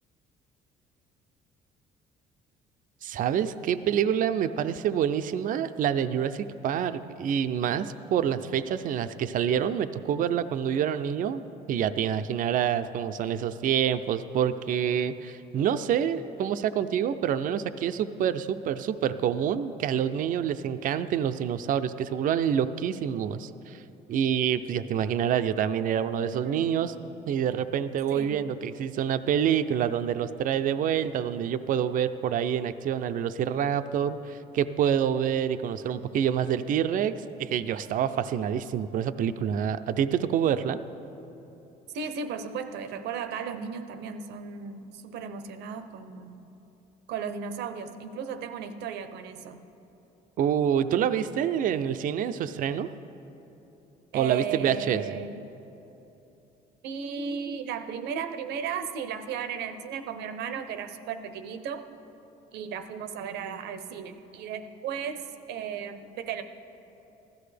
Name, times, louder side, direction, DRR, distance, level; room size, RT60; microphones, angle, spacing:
voice 1, 3.0-11.4 11.7-23.8 24.1-26.9 27.3-40.8 50.4-52.9 54.1-55.2, right 9 dB, 55° right, 12 dB, 0.4 m, -27 dB
voice 2, 26.3-26.7 28.1-28.3 41.9-46.5 47.1-49.7 54.1-55.4 56.8-61.8 62.5-65.2 65.5-66.4, right 6 dB, 80° right, 9 dB, 0.7 m, -35 dB
15.5 x 13.0 x 3.3 m, 3.0 s
cardioid pair, 110°, 17 cm